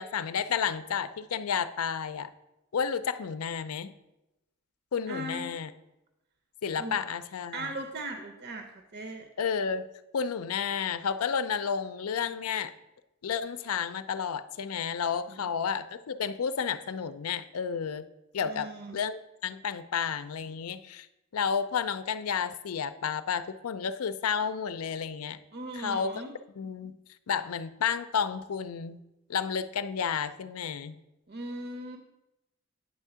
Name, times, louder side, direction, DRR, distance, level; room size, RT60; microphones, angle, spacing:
voice 1, 0.0-2.3 2.7-3.9 4.9-5.7 6.6-7.7 9.4-9.9 10.1-12.7 13.2-18.1 18.3-18.7 18.9-21.1 21.3-25.4 25.8-26.1 26.6-27.0 27.3-29.0 29.3-31.0, left 6 dB, 85° left, 12 dB, 0.5 m, -31 dB
voice 2, 5.1-5.5 6.8-7.0 7.5-9.3 15.3-15.5 18.4-19.0 25.5-26.3 31.3-32.0, right 1 dB, 50° right, 5 dB, 0.6 m, -39 dB
9.1 x 3.6 x 6.8 m, 0.95 s
head